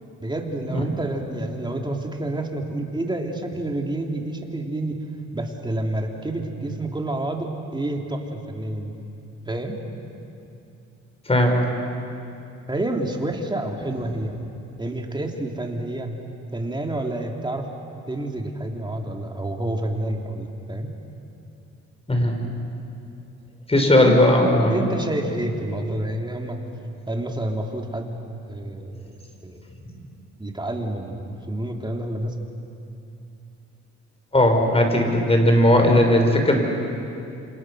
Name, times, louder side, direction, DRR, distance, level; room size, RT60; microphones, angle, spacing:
voice 1, 0.2-5.0 5.3-8.9 9.5-9.8 12.7-14.4 14.8-16.1 16.5-17.7 18.1-20.9 24.0-24.2 24.7-26.6 27.1-28.1 28.5-28.9 29.4-29.6 30.4-32.4, right 1 dB, 15° right, 2 dB, 3.1 m, -28 dB
voice 2, 11.2-11.6 22.1-22.3 23.7-24.8 34.3-36.6, left 1 dB, 20° left, 3 dB, 5.1 m, -17 dB
28.0 x 27.5 x 6.3 m, 2.7 s
cardioid pair, 90°, 30 cm